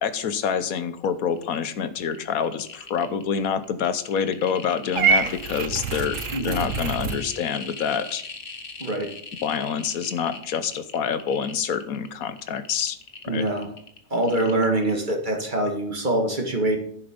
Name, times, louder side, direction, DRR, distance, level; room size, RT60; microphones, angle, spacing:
voice 1, 0.0-8.2 9.4-13.0 13.2-13.5, left 7 dB, 85° left, 12 dB, 1.3 m, -27 dB
sound 1, 1.0-1.1 1.3-1.7 2.0-15.1 15.4-15.5, left 4 dB, 40° left, 1.5 m, -40 dB
Purr / Meow, 5.0-7.2, right 5 dB, 65° right, 1.3 m, -25 dB
voice 2, 6.3-6.6 8.8-9.1 13.3-13.7 14.1-16.8, right 1 dB, 35° right, 3 dB, 2.0 m, -24 dB
10.0 x 7.7 x 5.3 m, 0.67 s
omnidirectional pair, 1.4 m